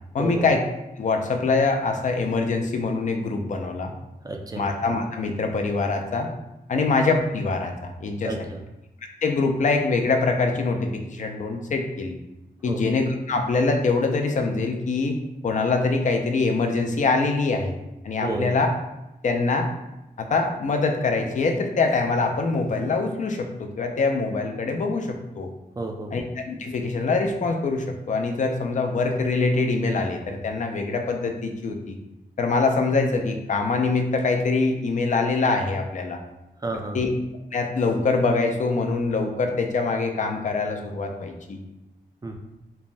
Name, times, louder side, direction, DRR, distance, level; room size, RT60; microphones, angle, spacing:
voice 1, 0.1-0.6 1.0-3.9 4.6-6.3 6.7-8.3 9.2-12.1 12.6-15.2 15.4-17.7 18.0-18.7 19.2-19.7 20.2-25.5 26.1-32.0 32.4-36.2 36.9-37.1 37.5-41.6, left 3 dB, 50° left, 4 dB, 0.4 m, -24 dB
voice 2, 4.2-4.7 6.7-6.8 8.2-8.6 12.6-12.8 18.2-18.5 25.8-26.1 36.6-37.0 42.2-42.4, right 2 dB, 25° right, 2 dB, 0.3 m, -31 dB
3.2 x 2.1 x 2.5 m, 0.95 s
wide cardioid pair, 115°, 16 cm